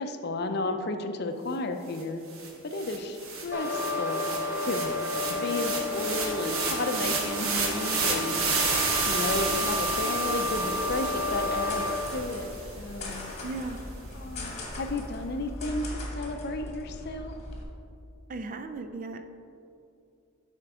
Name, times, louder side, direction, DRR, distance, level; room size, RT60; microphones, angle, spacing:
voice 1, 0.0-2.2 2.6-4.3 4.6-5.0 5.4-11.9 12.1-12.5 12.8-13.3 14.1-17.3, left 2 dB, 50° left, 6 dB, 0.5 m, -33 dB
sound 1, 2.0-2.1 2.3-12.7, right 4 dB, 90° right, 1.2 m, -31 dB
sound 2, 3.5-11.9, left 2 dB, 10° right, 1.0 m, -31 dB
sound 3, 8.4-17.6, left 1 dB, 35° left, 1.3 m, -40 dB
voice 2, 13.4-13.8 18.3-19.2, right 3 dB, 40° right, 8 dB, 0.4 m, -36 dB
11.5 x 4.5 x 3.6 m, 2.7 s
head